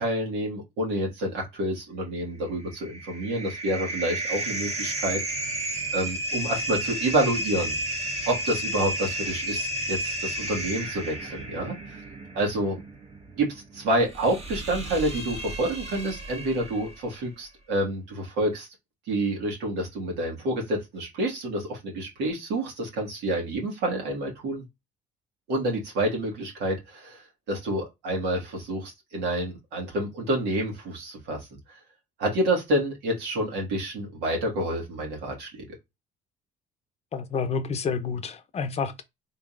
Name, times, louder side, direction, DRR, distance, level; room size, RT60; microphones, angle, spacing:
voice 1, 0.0-5.2 5.9-7.8 8.3-12.0 12.3-12.8 13.3-18.7 19.1-24.6 25.5-31.4 31.7-31.8 32.2-35.6, right 1 dB, 85° right, 2.0 m, -28 dB
sound 1, 2.5-17.1, right 1 dB, 40° right, 1.4 m, -33 dB
voice 2, 37.1-39.0, left 5 dB, 40° left, 0.6 m, -29 dB
3.9 x 3.7 x 2.5 m
cardioid pair, 110°, 17 cm